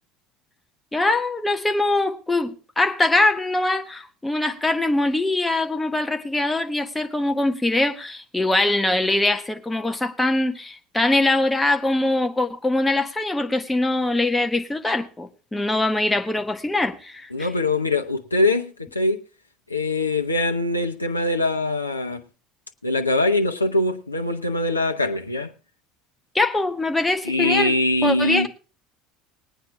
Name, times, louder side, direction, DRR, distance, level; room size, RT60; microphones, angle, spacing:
voice 1, 0.9-17.5 26.3-27.7 28.0-28.5, left 2 dB, 10° left, 1.5 m, -22 dB
voice 2, 17.3-19.2 19.7-22.2 22.8-25.5 27.2-28.5, left 2 dB, 90° left, 0.7 m, -22 dB
20.0 x 9.3 x 3.6 m
figure-of-eight pair, 65°, 0 cm